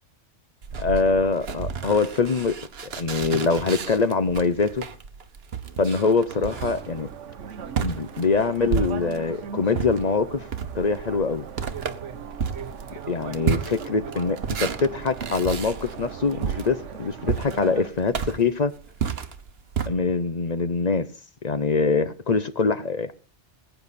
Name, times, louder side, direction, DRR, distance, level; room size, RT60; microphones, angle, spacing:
sound 1, 0.6-9.4 9.7-19.9, right 6 dB, 60° right, 1.2 m, -31 dB
voice 1, 0.8-2.6 2.8-4.8 5.8-7.1 7.8-10.5 10.7-11.5 13.1-18.7 19.9-21.1 21.4-23.1, left 4 dB, 40° left, 0.7 m, -24 dB
sound 2, 6.3-17.9, right 7 dB, 80° right, 1.3 m, -39 dB
20.5 x 9.0 x 4.2 m
omnidirectional pair, 1.2 m